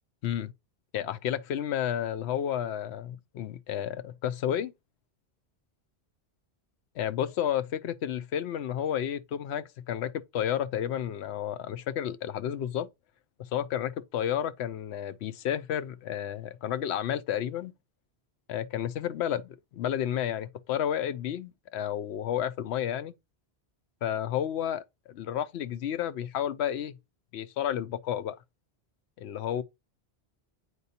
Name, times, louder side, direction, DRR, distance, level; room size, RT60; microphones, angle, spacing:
voice 1, 0.9-4.7 7.0-12.9 13.4-17.7 18.5-23.1 24.0-27.0 27.3-28.3 29.2-29.6, left 10 dB, 80° left, 0.8 m, -31 dB
8.2 x 4.5 x 2.8 m
omnidirectional pair, 1.1 m